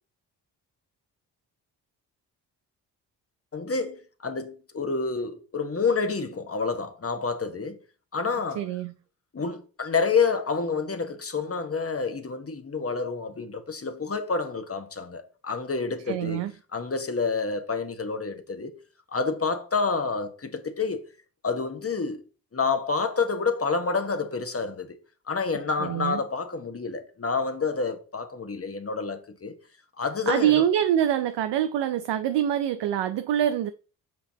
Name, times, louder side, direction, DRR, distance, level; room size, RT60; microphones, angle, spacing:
voice 1, 3.5-7.8 8.1-8.6 9.3-16.5 16.7-18.7 19.1-21.0 21.4-22.2 22.5-25.0 25.3-29.5 30.0-30.6, left 4 dB, 30° left, 1.3 m, -28 dB
voice 2, 8.6-8.9 16.1-16.5 25.8-26.2 30.3-33.7, right 11 dB, 65° right, 0.6 m, -25 dB
7.8 x 5.7 x 2.9 m
supercardioid pair, 45°, 45 cm